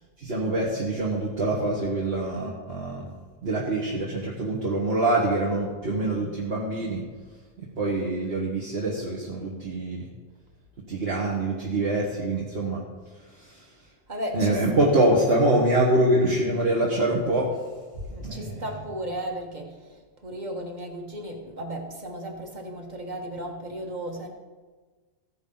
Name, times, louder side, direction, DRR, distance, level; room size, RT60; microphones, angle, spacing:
voice 1, 0.2-3.1 3.4-7.0 7.6-10.1 10.9-12.8 13.2-13.7 14.3-17.6 18.2-18.6, right 1 dB, 65° right, -4 dB, 1.7 m, -25 dB
voice 2, 5.8-6.3 14.1-14.6 18.1-24.3, right 1 dB, 40° right, 1 dB, 1.7 m, -35 dB
15.5 x 9.9 x 4.0 m, 1.4 s
omnidirectional pair, 1.1 m